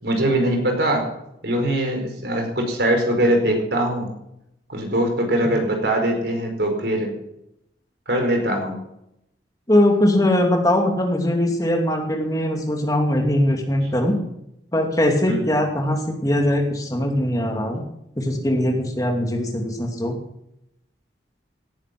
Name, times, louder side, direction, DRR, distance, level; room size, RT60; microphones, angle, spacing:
voice 1, 0.0-1.1 1.4-4.1 4.7-7.1 8.1-8.8 15.3-15.5, right 1 dB, 65° right, 4 dB, 4.7 m, -22 dB
voice 2, 9.7-14.2 14.7-17.8 18.2-20.2, left 1 dB, 20° left, 2 dB, 2.5 m, -21 dB
18.0 x 11.0 x 6.0 m, 0.82 s
head